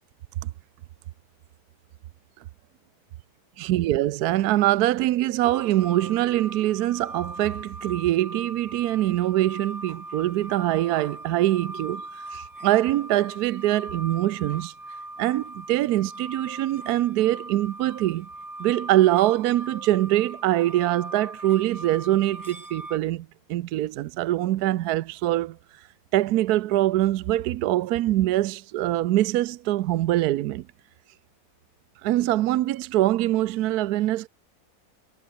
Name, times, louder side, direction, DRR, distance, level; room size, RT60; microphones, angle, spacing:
voice 1, 3.6-14.7 15.2-18.3 18.6-25.6 26.1-30.6 32.0-34.3, right 15 dB, 80° right, 1.1 m, -23 dB
sound 1, 5.4-23.0, right 2 dB, 10° right, 1.6 m, -40 dB
omnidirectional pair, 1.7 m